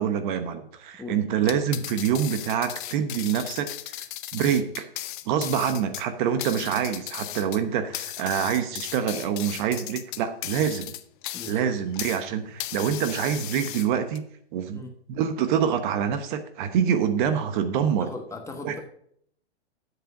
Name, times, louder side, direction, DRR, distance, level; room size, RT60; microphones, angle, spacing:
voice 1, 0.0-4.0 4.3-4.9 5.3-10.9 11.5-14.2 14.5-18.1 18.6-18.7, right 8 dB, 45° right, 9 dB, 1.1 m, -26 dB
sound 1, 1.4-12.3 12.6-14.2, left 14 dB, 45° left, 0.7 m, -36 dB
voice 2, 11.3-11.7 14.7-14.9 18.0-18.8, left 2 dB, 10° left, 4 dB, 1.2 m, -38 dB
8.0 x 7.7 x 5.1 m, 0.67 s
hypercardioid pair, 125°, 34 cm